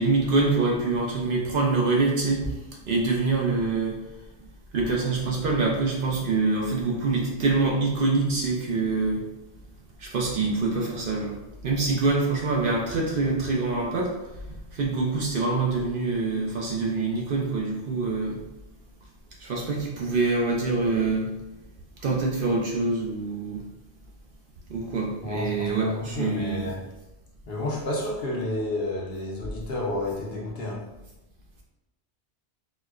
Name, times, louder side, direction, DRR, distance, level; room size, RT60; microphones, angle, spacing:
voice 1, 0.0-2.5 2.9-4.0 4.7-9.2 10.0-11.4 11.6-14.1 14.5-18.4 19.4-21.3 22.0-23.6 24.7-26.7, right 3 dB, 60° right, -2 dB, 0.7 m, -25 dB
voice 2, 25.2-26.8 27.5-30.8, left 2 dB, 60° left, -3 dB, 0.9 m, -30 dB
4.2 x 2.1 x 2.3 m, 0.97 s
omnidirectional pair, 1.1 m